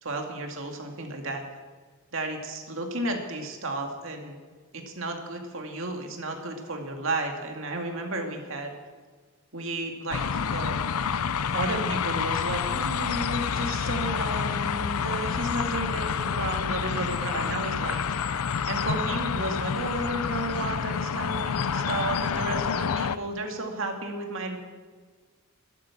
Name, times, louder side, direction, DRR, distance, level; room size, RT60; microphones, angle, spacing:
voice 1, 0.0-1.4 2.1-4.4 4.7-8.7 9.5-10.9 11.5-24.6, right 2 dB, 60° right, 3 dB, 2.2 m, -33 dB
sound 1, 10.1-23.2, left 6 dB, 85° left, 0.6 m, -28 dB
12.5 x 12.0 x 7.4 m, 1.5 s
head